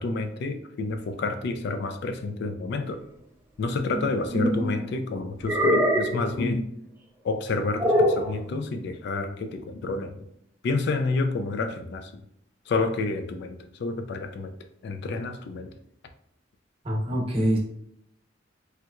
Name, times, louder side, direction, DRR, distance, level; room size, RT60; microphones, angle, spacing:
voice 1, 0.0-3.0 3.6-6.7 7.2-10.3 10.6-12.2 12.7-14.5 14.8-15.7, left 3 dB, 60° left, 7 dB, 0.3 m, -29 dB
sound 1, 3.9-4.7 5.4-6.3 7.8-8.3, equal, 10° right, 0.5 m, -23 dB
voice 2, 16.8-17.6, equal, 30° right, -3 dB, 0.8 m, -24 dB
3.2 x 2.9 x 2.3 m, 0.74 s
head